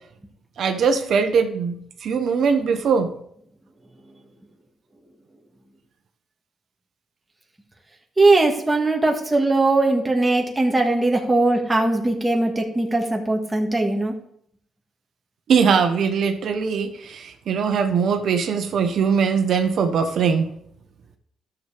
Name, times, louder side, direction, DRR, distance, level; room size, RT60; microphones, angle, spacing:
voice 1, 0.6-1.7 2.0-3.1 15.5-20.5, right 6 dB, 65° right, 7 dB, 1.1 m, -21 dB
voice 2, 8.2-14.1, right 2 dB, 10° right, 1 dB, 1.7 m, -20 dB
12.5 x 7.2 x 3.5 m, 0.69 s
cardioid pair, 90°, 0 cm